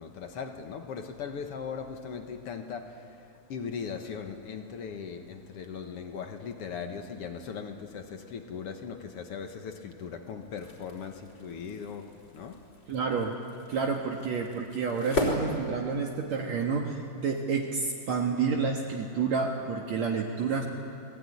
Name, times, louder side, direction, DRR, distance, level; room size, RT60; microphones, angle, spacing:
voice 1, 0.0-13.0, left 6 dB, 55° left, 6 dB, 1.8 m, -39 dB
sound 1, 10.4-16.4, left 1 dB, 35° left, 5.1 m, -37 dB
voice 2, 12.9-13.3 13.7-20.7, right 5 dB, 60° right, 0 dB, 2.5 m, -29 dB
28.0 x 20.0 x 9.8 m, 2.6 s
omnidirectional pair, 4.0 m